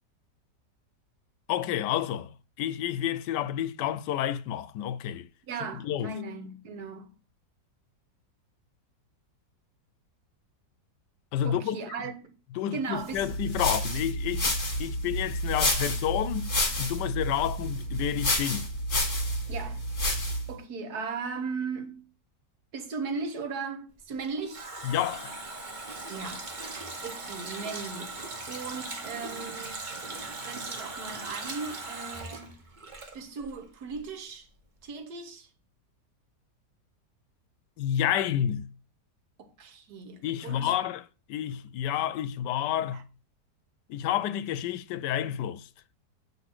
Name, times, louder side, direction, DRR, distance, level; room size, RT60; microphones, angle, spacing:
voice 1, 1.5-2.3 2.6-5.3 5.8-6.1 11.3-11.8 12.6-16.5 16.8-18.7 24.8-25.4 37.8-38.7 40.2-41.0 41.3-43.1 43.9-45.7, left 11 dB, 85° left, 1.2 m, -30 dB
voice 2, 5.4-7.1 11.4-12.3 12.7-13.3 19.5-19.8 20.5-22.1 22.7-24.7 26.1-32.5 33.1-34.5 34.8-35.5 39.4-40.7 42.9-43.0, right 4 dB, 65° right, 1.4 m, -37 dB
sound 1, 13.2-20.5, left 1 dB, 30° left, 1.7 m, -29 dB
Water tap faucet, 24.0-33.6 33.9-34.0, right 3 dB, 35° right, 1.0 m, -39 dB
7.8 x 3.2 x 6.0 m
omnidirectional pair, 1.8 m